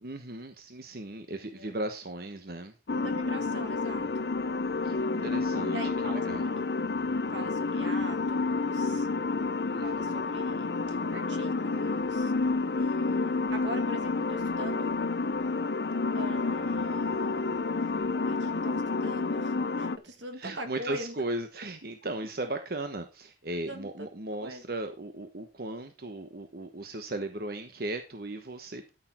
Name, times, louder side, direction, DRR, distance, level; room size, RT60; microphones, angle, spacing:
voice 1, 0.0-2.7 4.8-6.4 9.7-10.1 20.4-28.9, right 1 dB, 55° right, 7 dB, 1.1 m, -37 dB
voice 2, 1.4-1.7 2.9-4.3 4.9-5.4 5.7-6.7 7.3-9.1 9.8-12.3 12.8-14.9 16.1-17.6 18.2-21.2 23.5-24.1 24.4-24.6, right 1 dB, 85° right, 6 dB, 2.4 m, -43 dB
sound 1, 2.9-20.0, left 3 dB, 65° left, 0.7 m, -29 dB
13.5 x 6.8 x 4.4 m, 0.28 s
head